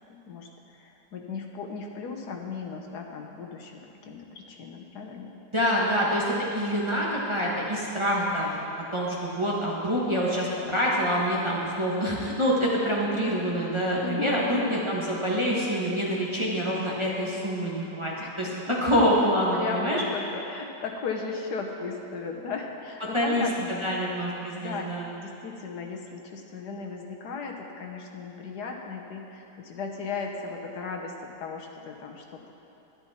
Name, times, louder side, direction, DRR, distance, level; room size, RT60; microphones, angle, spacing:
voice 1, 0.1-5.3 14.0-14.7 18.2-18.8 19.5-23.7 24.6-24.9 25.2-32.5, left 5 dB, 75° left, 2 dB, 1.5 m, -36 dB
voice 2, 5.5-8.7 8.9-20.0 23.1-25.1, equal, 20° right, -5 dB, 1.3 m, -26 dB
11.0 x 10.5 x 4.3 m, 2.8 s
omnidirectional pair, 1.8 m